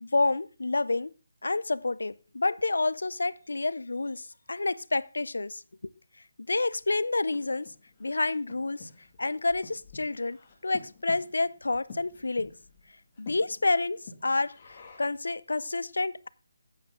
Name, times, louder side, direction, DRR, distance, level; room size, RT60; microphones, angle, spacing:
voice 1, 0.0-1.1 1.4-5.6 6.5-7.7 8.0-8.9 9.2-10.4 10.6-12.5 13.2-16.3, left 3 dB, 90° left, 0.5 m, -29 dB
Breathing, 6.7-15.3, left 4 dB, 30° left, 2.0 m, -50 dB
8.8 x 8.6 x 3.6 m
figure-of-eight pair, 165°, 0 cm